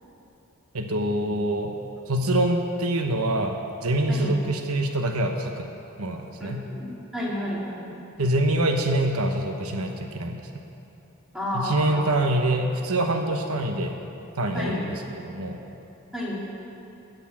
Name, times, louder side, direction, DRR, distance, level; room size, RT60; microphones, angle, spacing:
voice 1, 0.7-1.7 2.1-5.7 6.0-6.6 8.2-10.4 11.5-13.9 14.4-14.9 15.2-15.6, right 1 dB, 85° right, 4 dB, 1.0 m, -25 dB
voice 2, 6.4-7.9 11.3-12.0 14.5-14.8 16.1-16.5, left 1 dB, 5° right, -6 dB, 2.7 m, -31 dB
13.5 x 6.7 x 8.5 m, 2.8 s
head